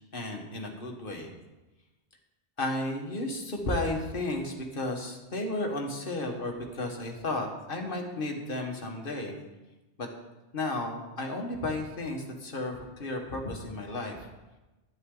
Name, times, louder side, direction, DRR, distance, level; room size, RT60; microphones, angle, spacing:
voice 1, 0.1-1.3 2.6-9.4 10.0-10.1 10.5-14.3, left 2 dB, 55° left, 2 dB, 1.7 m, -33 dB
12.0 x 10.0 x 3.9 m, 1.1 s
omnidirectional pair, 1.1 m